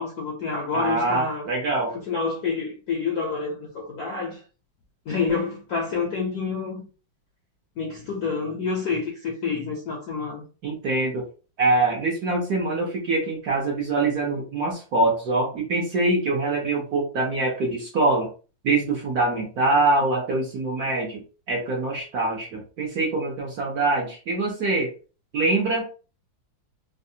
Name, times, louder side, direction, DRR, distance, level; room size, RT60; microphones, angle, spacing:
voice 1, 0.0-1.4 2.1-4.4 5.1-6.8 7.8-10.4, left 4 dB, 70° left, 0.9 m, -28 dB
voice 2, 0.7-1.9 10.6-11.3 11.6-18.3 18.6-24.9 25.3-25.8, right 2 dB, 60° right, 1.0 m, -24 dB
3.3 x 2.3 x 2.7 m
omnidirectional pair, 2.3 m